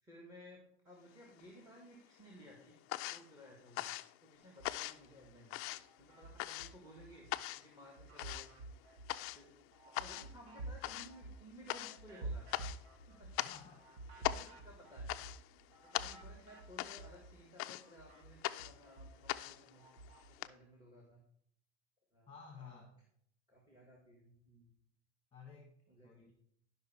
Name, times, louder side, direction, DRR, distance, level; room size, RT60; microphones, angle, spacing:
voice 1, 0.0-3.9 4.2-5.6 6.0-7.3 7.5-8.5 9.3-9.6 9.8-12.5 13.1-13.3 14.2-15.1 15.5-19.9 20.4-21.2 22.1-22.8 23.5-24.7 25.9-26.3, equal, 10° right, 0 dB, 1.9 m, -58 dB
sound 1, 1.1-1.9 2.2-20.5, left 16 dB, 40° left, 0.4 m, -42 dB
sound 2, 4.5-5.3 5.7-7.3 7.7-17.4 17.7-20.3, right 2 dB, 65° right, 1.7 m, -50 dB
voice 2, 13.4-13.8 22.3-22.9 25.3-25.7 26.0-26.3, left 6 dB, 15° left, 2 dB, 1.5 m, -54 dB
11.5 x 5.7 x 4.4 m, 0.68 s
supercardioid pair, 125°, 34 cm